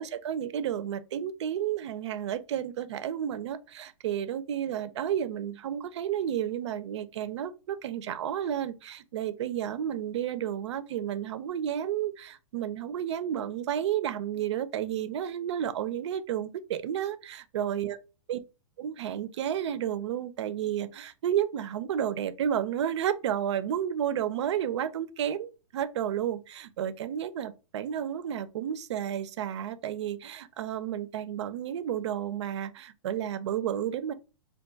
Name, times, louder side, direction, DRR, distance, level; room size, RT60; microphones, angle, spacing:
voice 1, 0.0-18.0 18.3-18.4 18.8-34.1, right 10 dB, 60° right, 0.4 m, -31 dB
2.4 x 2.3 x 3.8 m
hypercardioid pair, 160°, 17 cm